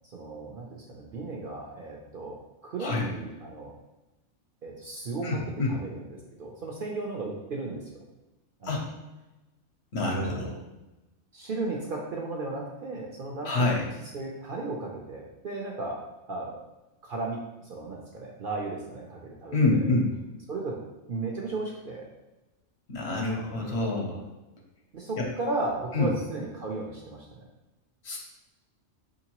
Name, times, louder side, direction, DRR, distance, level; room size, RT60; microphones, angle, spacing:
voice 1, 0.1-2.4 2.6-3.7 4.6-5.4 5.7-8.0 8.6-8.9 10.0-10.3 11.3-16.0 16.3-16.6 17.0-19.9 20.5-20.8 21.1-22.1 23.3-23.8 24.9-27.4, right 3 dB, 55° right, -1 dB, 0.7 m, -35 dB
voice 2, 5.2-5.7 8.6-8.9 9.9-10.5 13.4-13.8 19.5-20.1 22.9-24.2 25.2-25.3 25.9-26.1 28.0-28.2, left 2 dB, 60° left, -1 dB, 1.0 m, -26 dB
5.1 x 2.8 x 2.9 m, 1.0 s
omnidirectional pair, 1.3 m